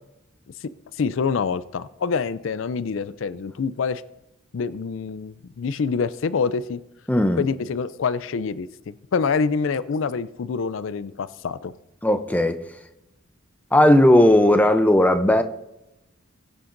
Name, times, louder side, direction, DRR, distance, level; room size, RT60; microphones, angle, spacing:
voice 1, 1.0-4.0 4.5-6.8 7.4-11.7, left 5 dB, 70° left, 0.4 m, -26 dB
voice 2, 7.1-7.4 12.0-12.6 13.7-15.4, left 1 dB, 10° left, 0.5 m, -16 dB
21.0 x 8.5 x 2.6 m
head